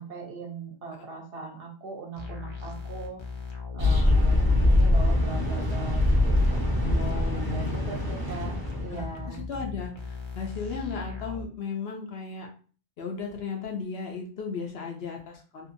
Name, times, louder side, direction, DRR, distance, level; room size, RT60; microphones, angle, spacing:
voice 1, 0.0-3.2 3.7-6.8 7.4-9.4, right 4 dB, 55° right, -1 dB, 0.8 m, -40 dB
sound 1, 2.1-11.5, left 5 dB, 45° left, 0.3 m, -38 dB
sound 2, 3.8-9.1, left 1 dB, 25° right, 0.5 m, -23 dB
voice 2, 4.3-4.7 6.8-7.8 8.9-12.5 13.0-15.7, left 5 dB, 65° left, 1 dB, 0.7 m, -36 dB
2.7 x 2.4 x 2.5 m, 0.39 s
omnidirectional pair, 1.3 m